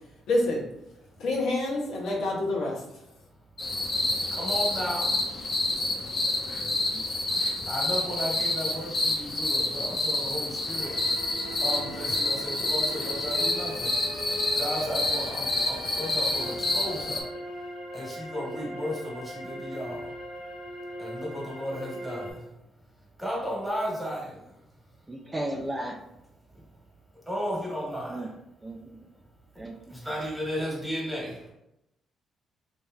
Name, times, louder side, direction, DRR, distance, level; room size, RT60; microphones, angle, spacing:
voice 1, 0.3-0.7 1.2-2.8, left 2 dB, 80° left, -3 dB, 0.9 m, -27 dB
sound 1, 3.6-17.2, left 2 dB, 45° left, 0.8 m, -28 dB
voice 2, 4.3-5.1 7.6-10.9 11.6-13.9 14.5-17.2 17.9-20.0 21.0-22.4 23.2-24.4 27.3-28.3 29.9-31.4, equal, ahead, -4 dB, 1.3 m, -34 dB
sound 2, 10.8-22.3, equal, 75° right, 0.9 m, -40 dB
voice 3, 25.1-26.0 28.1-28.3 28.6-29.0 29.6-29.7, right 1 dB, 20° right, 2 dB, 0.3 m, -34 dB
3.2 x 2.9 x 2.3 m, 0.87 s
cardioid pair, 90°, 0 cm